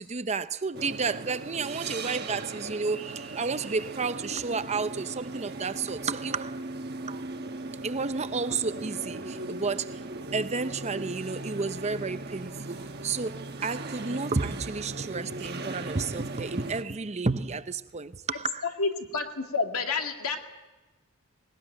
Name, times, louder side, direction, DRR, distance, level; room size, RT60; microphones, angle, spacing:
voice 1, 0.0-6.6 7.1-7.2 7.8-10.0 10.3-18.7, right 4 dB, 30° right, 0.7 m, -31 dB
sound 1, 0.7-16.8, right 2 dB, 50° right, 1.2 m, -38 dB
voice 2, 18.8-20.4, left 4 dB, 80° left, 2.3 m, -29 dB
20.0 x 18.5 x 9.1 m
head